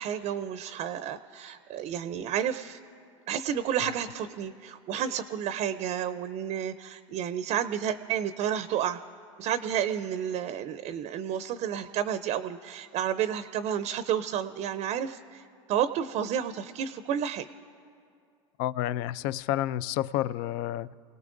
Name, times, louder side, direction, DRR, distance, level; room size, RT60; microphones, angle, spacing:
voice 1, 0.0-2.8 3.3-9.0 9.4-17.5, right 9 dB, 45° right, 0.5 m, -31 dB
voice 2, 18.6-20.9, left 13 dB, 60° left, 0.4 m, -30 dB
29.5 x 18.0 x 2.6 m
hypercardioid pair, 100°, 16 cm